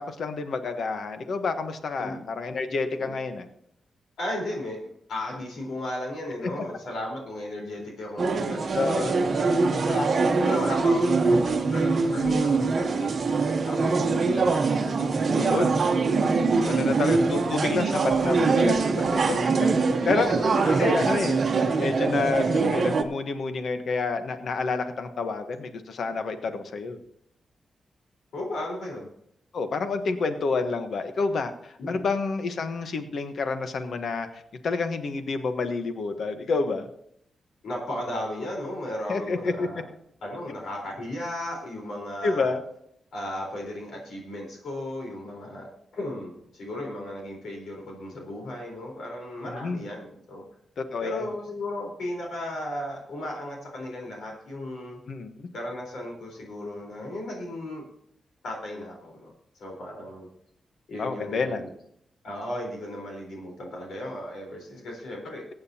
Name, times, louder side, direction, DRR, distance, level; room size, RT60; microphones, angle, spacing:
voice 1, 0.0-3.4 8.7-9.1 12.1-12.5 15.4-15.7 16.7-19.4 20.1-20.4 20.8-21.4 21.8-27.0 29.5-36.9 39.1-39.7 42.2-42.6 49.5-49.8 50.8-51.3 55.1-55.5 61.0-61.6, left 4 dB, 55° left, 8 dB, 1.1 m, -29 dB
voice 2, 4.2-4.8 5.1-13.3 13.6-14.6 15.1-15.6 16.6-17.1 19.7-21.3 28.3-29.1 31.8-32.0 37.6-39.8 40.2-42.6 43.1-50.4 51.0-55.0 55.5-57.8 58.4-59.3 59.6-60.3 60.9-61.7 62.2-65.4, left 1 dB, 80° left, -1 dB, 4.2 m, -35 dB
sound 1, 8.2-23.0, right 4 dB, 40° right, 1.0 m, -23 dB
22.5 x 9.1 x 2.9 m, 0.72 s
wide cardioid pair, 180°, 0 cm